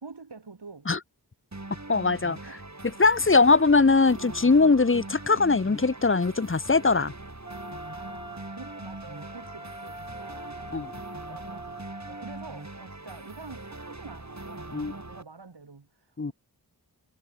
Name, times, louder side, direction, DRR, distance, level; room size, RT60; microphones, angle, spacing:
voice 1, 0.0-0.9 2.4-2.5 7.9-16.3, right 4 dB, 80° right, 3.2 m, -47 dB
sound 1, 1.5-15.2, right 2 dB, 40° right, 6.2 m, -42 dB
voice 2, 1.9-2.6 2.8-7.1 10.7-10.9 14.7-14.9 16.2-16.3, left 4 dB, 30° left, 0.9 m, -21 dB
Wind instrument woodwind instrument, 7.4-12.7, right 1 dB, 10° right, 2.1 m, -43 dB
wide cardioid pair, 50°, 41 cm